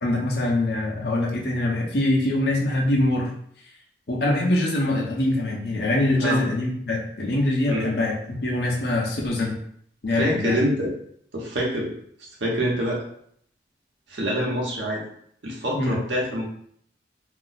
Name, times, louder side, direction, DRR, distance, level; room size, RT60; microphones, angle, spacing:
voice 1, 0.0-3.3 4.1-9.6 10.0-10.6 15.7-16.0, left 1 dB, 65° left, -2 dB, 0.7 m, -23 dB
voice 2, 10.1-10.9 11.3-11.9 12.4-13.0 14.1-15.0 15.4-16.4, equal, 90° right, -3 dB, 0.8 m, -25 dB
2.5 x 2.0 x 3.9 m, 0.66 s
head